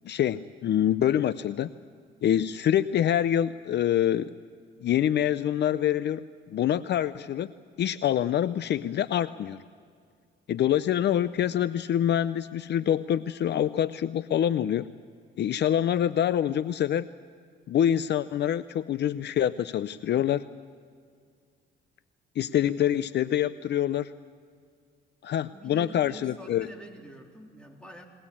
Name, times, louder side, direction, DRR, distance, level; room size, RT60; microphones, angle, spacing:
voice 1, 0.0-1.7 2.2-4.3 4.8-6.2 6.5-7.5 7.8-9.6 10.5-14.9 15.4-17.1 17.7-20.4 22.4-24.1 25.2-26.7, left 10 dB, 60° left, 15 dB, 0.6 m, -26 dB
voice 2, 25.4-28.0, right 2 dB, 5° left, 1 dB, 3.6 m, -46 dB
22.0 x 19.0 x 8.5 m, 2.1 s
cardioid pair, 90°, 20 cm